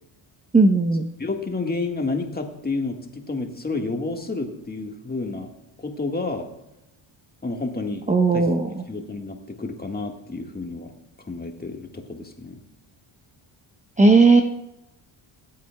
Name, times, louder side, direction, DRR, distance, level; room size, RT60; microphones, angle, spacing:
voice 1, 0.5-1.1 8.1-8.7 14.0-14.4, right 3 dB, 15° right, 4 dB, 0.8 m, -16 dB
voice 2, 1.2-5.5 5.8-6.5 7.4-8.0 8.3-8.5 8.9-10.9 11.3-12.6, left 3 dB, 20° left, 3 dB, 1.6 m, -30 dB
18.0 x 8.4 x 2.3 m, 0.91 s
cardioid pair, 90°, 50 cm